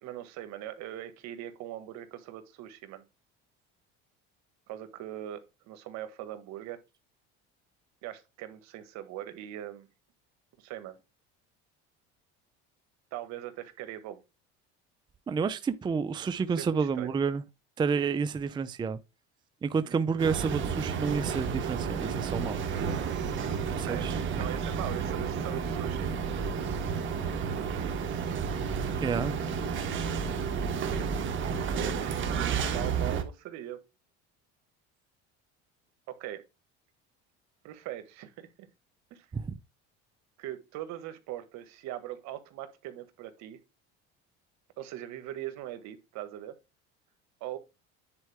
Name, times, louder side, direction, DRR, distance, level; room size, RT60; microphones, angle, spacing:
voice 1, 0.0-3.0 4.7-6.8 8.0-9.9 10.6-11.0 13.1-14.2 16.6-17.1 19.8-20.0 23.1-23.5 23.8-24.1 24.3-26.1 30.4-30.8 32.5-33.9 36.1-36.4 37.6-38.7 39.1-39.3 40.4-43.6 44.8-46.6 47.4-47.6, right 12 dB, 70° right, 1.6 m, -41 dB
voice 2, 15.3-17.4 17.8-19.0 19.6-22.6 23.8-24.5 29.0-29.4 39.3-39.5, right 5 dB, 15° right, 0.5 m, -30 dB
sound 1, 20.2-33.2, right 6 dB, 40° right, 1.6 m, -31 dB
9.7 x 4.5 x 3.4 m
cardioid pair, 130°, 29 cm